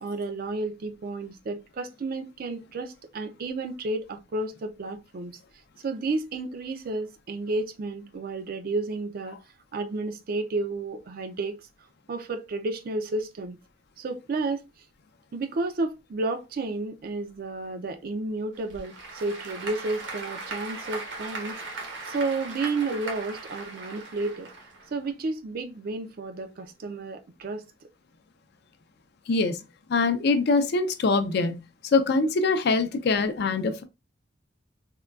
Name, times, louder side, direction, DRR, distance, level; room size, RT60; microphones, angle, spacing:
voice 1, 0.0-5.4 5.8-9.4 9.7-11.6 12.1-13.6 14.0-14.6 15.3-24.5 24.9-27.6, right 3 dB, 50° right, 0.4 m, -32 dB
Applause / Crowd, 18.5-25.1, right 3 dB, 75° right, 0.9 m, -38 dB
voice 2, 29.9-31.6 31.9-33.8, left 3 dB, 60° left, 0.4 m, -23 dB
3.6 x 2.2 x 2.3 m
head